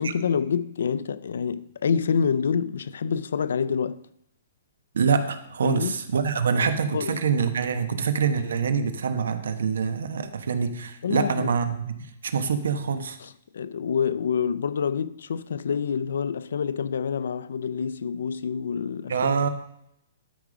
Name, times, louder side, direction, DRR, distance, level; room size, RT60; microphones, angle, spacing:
voice 1, 0.0-4.0 5.6-5.9 6.5-6.7 6.9-7.2 11.0-11.5 13.2-19.3, left 6 dB, 75° left, 0.5 m, -27 dB
voice 2, 4.9-13.2 19.1-19.5, right 6 dB, 85° right, 1.0 m, -25 dB
12.5 x 5.0 x 5.1 m
hypercardioid pair, 180°, 0 cm